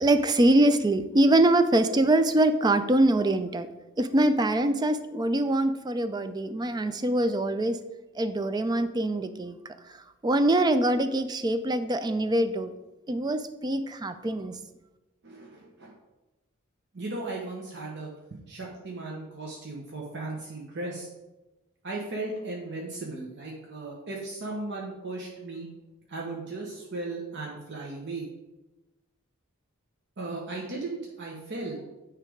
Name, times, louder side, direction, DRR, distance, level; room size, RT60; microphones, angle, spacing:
voice 1, 0.0-3.7 4.0-7.8 8.2-9.6 10.2-12.7 13.1-14.6, right 1 dB, 20° right, 11 dB, 0.4 m, -24 dB
voice 2, 15.2-15.9 16.9-21.1 21.8-25.7 26.1-28.3 30.2-31.9, right 2 dB, 55° right, -2 dB, 1.0 m, -36 dB
9.1 x 3.4 x 4.9 m, 1.0 s
head